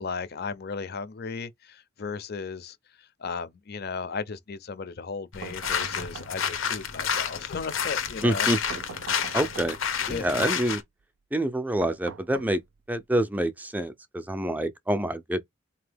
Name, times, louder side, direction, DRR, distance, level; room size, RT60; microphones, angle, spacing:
voice 1, 0.0-2.8 3.2-8.5 10.1-10.5, left 5 dB, 55° left, 0.6 m, -35 dB
sound 1, 5.3-10.8, left 7 dB, 90° left, 0.9 m, -30 dB
sound 2, 5.4-6.7 8.7-10.0 11.8-13.0, right 6 dB, 70° right, 0.4 m, -43 dB
voice 2, 8.2-8.8 9.3-9.8 10.1-10.8 11.3-12.6 12.9-15.4, right 1 dB, 10° right, 0.4 m, -27 dB
4.1 x 2.8 x 3.4 m
head